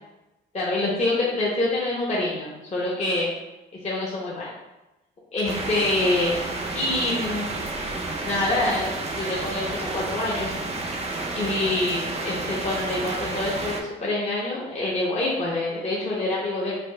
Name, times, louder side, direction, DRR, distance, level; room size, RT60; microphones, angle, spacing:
voice 1, 0.5-3.3 3.8-4.5 5.3-6.4 6.7-7.7 8.2-10.5 11.3-16.7, left 2 dB, 35° left, -5 dB, 0.7 m, -26 dB
sound 1, 5.4-13.8, right 2 dB, 30° right, 0.5 m, -31 dB
5.0 x 2.3 x 2.2 m, 1.0 s
cardioid pair, 90°, 20 cm